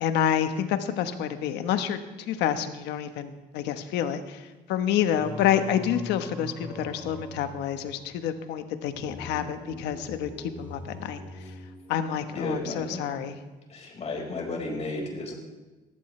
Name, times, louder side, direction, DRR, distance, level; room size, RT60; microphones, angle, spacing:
voice 1, 0.0-2.0 2.3-4.4 4.7-11.2 11.9-13.4, left 9 dB, 90° left, 8 dB, 1.1 m, -28 dB
Singing, 5.1-12.4, left 1 dB, 10° right, 3.7 m, -42 dB
voice 2, 12.3-13.2 13.7-15.3, left 2 dB, 40° left, 0 dB, 4.9 m, -33 dB
19.5 x 14.0 x 3.3 m, 1.2 s
cardioid pair, 110°, 17 cm